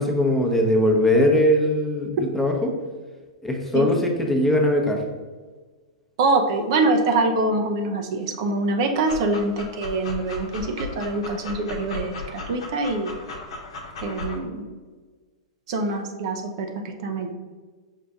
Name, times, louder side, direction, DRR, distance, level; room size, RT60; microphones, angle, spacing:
voice 1, 0.0-2.7 3.4-5.0, left 1 dB, 10° left, 1 dB, 0.8 m, -20 dB
voice 2, 6.2-13.1 14.0-14.6 15.7-17.3, right 2 dB, 55° right, 4 dB, 0.6 m, -24 dB
Dog, 8.9-14.4, left 4 dB, 65° left, 0.9 m, -36 dB
5.5 x 2.5 x 3.5 m, 1.4 s
hypercardioid pair, 105°, 3 cm